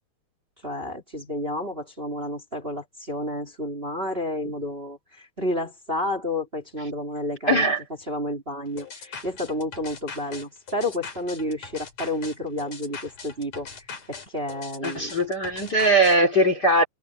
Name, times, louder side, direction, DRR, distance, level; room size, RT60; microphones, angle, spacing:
voice 1, 0.6-5.0 5.4-7.6 8.1-13.7 14.1-15.1, left 1 dB, 15° right, 2.9 m, -30 dB
voice 2, 7.5-7.8 14.8-16.9, right 1 dB, 30° left, 2.7 m, -20 dB
sound 1, 8.8-16.2, left 5 dB, 45° left, 4.6 m, -40 dB
omnidirectional pair, 4.1 m